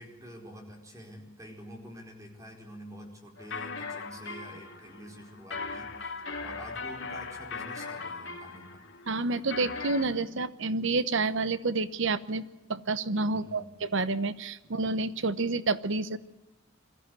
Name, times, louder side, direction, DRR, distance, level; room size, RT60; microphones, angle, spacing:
voice 1, 0.0-6.1 6.4-8.8 13.3-13.7, equal, 15° right, 3 dB, 4.6 m, -47 dB
sound 1, 3.4-10.0, left 4 dB, 65° left, 2.6 m, -39 dB
voice 2, 9.1-12.4 12.7-16.2, right 3 dB, 65° right, 15 dB, 1.0 m, -29 dB
22.5 x 14.5 x 9.6 m, 1.1 s
head